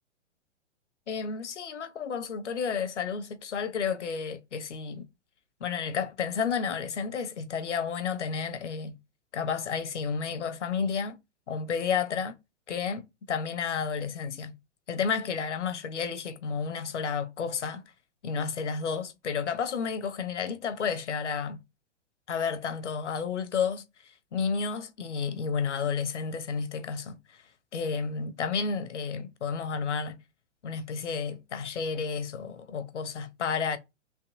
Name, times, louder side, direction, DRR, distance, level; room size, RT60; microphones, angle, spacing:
voice 1, 1.1-5.1 5.6-9.0 9.3-11.2 11.5-12.3 12.7-14.6 14.9-17.8 18.2-21.6 22.3-27.4 27.7-30.2 30.6-33.8, left 6 dB, 70° left, 0.8 m, -31 dB
3.5 x 2.7 x 2.5 m
figure-of-eight pair, 115°, 37 cm